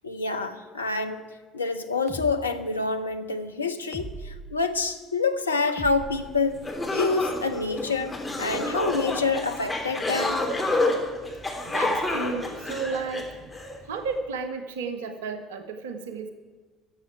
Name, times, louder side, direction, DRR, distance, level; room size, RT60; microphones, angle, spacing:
voice 1, 0.0-1.2 1.5-6.6 6.9-10.4, left 4 dB, 90° left, 7 dB, 0.7 m, -27 dB
sound 1, 2.1-2.3 3.9-4.5 5.8-6.9, right 2 dB, 30° right, 1.3 m, -39 dB
sound 2, 6.2-6.3 6.6-13.7, left 2 dB, 15° left, 3.2 m, -28 dB
voice 2, 11.7-13.4 13.9-16.3, right 4 dB, 75° right, 10 dB, 0.8 m, -32 dB
12.5 x 7.5 x 9.4 m, 1.4 s
figure-of-eight pair, 55°, 0 cm